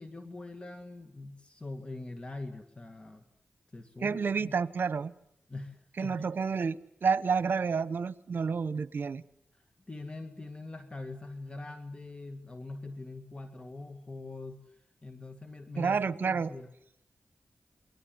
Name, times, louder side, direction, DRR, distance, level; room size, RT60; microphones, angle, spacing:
voice 1, 0.0-3.2 3.7-4.6 5.5-6.3 9.5-16.7, left 2 dB, 30° left, 7 dB, 2.1 m, -43 dB
voice 2, 4.0-5.1 6.0-9.2 15.8-16.5, right 5 dB, 70° right, 16 dB, 1.0 m, -30 dB
28.5 x 22.5 x 8.0 m, 0.75 s
cardioid pair, 65°, 4 cm